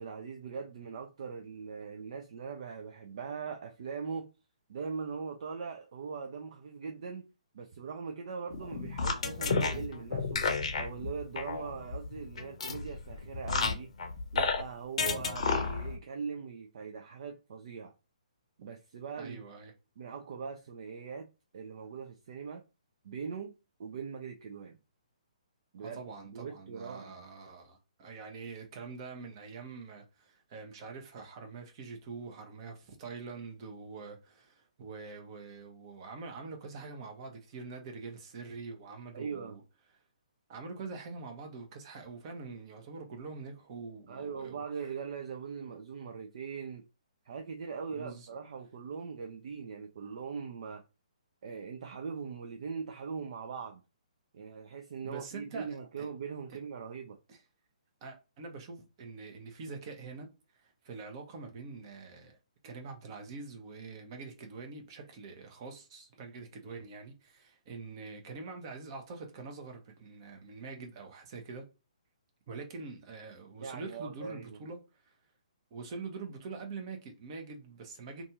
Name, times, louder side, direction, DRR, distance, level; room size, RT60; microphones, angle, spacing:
voice 1, 0.0-4.3 4.7-7.2 7.5-10.5 10.7-13.9 14.3-17.9 18.6-19.5 20.0-21.3 21.5-22.6 23.0-23.5 23.8-24.8 25.7-27.2 39.1-39.6 44.1-46.8 47.2-50.8 51.4-53.8 54.3-57.2 73.6-74.6, right 6 dB, 55° right, 0.4 m, -41 dB
sound 1, 8.5-14.6 15.0-16.0, left 4 dB, 55° left, 0.6 m, -32 dB
voice 2, 19.2-19.7 25.8-39.6 40.5-44.6 47.9-48.3 55.0-56.1 56.5-56.6 57.3-57.4 58.0-60.3 60.6-62.4 62.6-71.6 72.5-75.1 75.7-78.2, right 4 dB, 40° right, 0.8 m, -45 dB
2.6 x 2.4 x 2.8 m
figure-of-eight pair, 135°, 4 cm